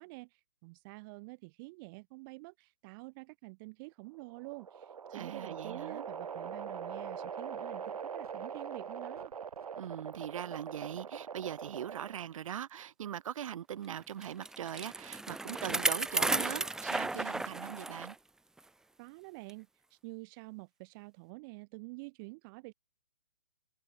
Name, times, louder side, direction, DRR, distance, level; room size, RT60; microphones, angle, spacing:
voice 1, 0.0-9.3 19.0-22.7, right 27 dB, 35° right, 3.0 m, -48 dB
sound 1, 4.1-12.3, right 7 dB, 75° right, 5.7 m, -42 dB
voice 2, 5.1-6.1 9.8-18.2, right 10 dB, 60° right, 6.1 m, -41 dB
Bicycle, 14.2-18.1 18.6-18.7 19.5-19.6, right 2 dB, 5° right, 0.5 m, -34 dB
hypercardioid pair, 140°, 19 cm